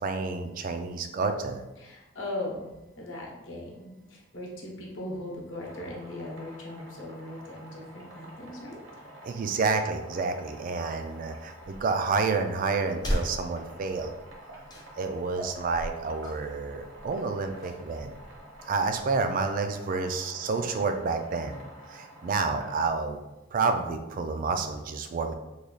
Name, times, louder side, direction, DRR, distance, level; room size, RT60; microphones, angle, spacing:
voice 1, 0.0-1.6 9.2-14.1 15.0-18.1 18.7-21.6 21.9-23.2 23.5-25.3, right 4 dB, 45° right, 6 dB, 0.3 m, -29 dB
voice 2, 1.8-8.8, left 1 dB, 70° left, -2 dB, 0.9 m, -39 dB
sound 1, 5.6-22.9, right 1 dB, 60° right, 0.8 m, -48 dB
sound 2, 11.6-19.1, equal, 20° left, 0.5 m, -39 dB
3.2 x 2.3 x 3.8 m, 1.0 s
head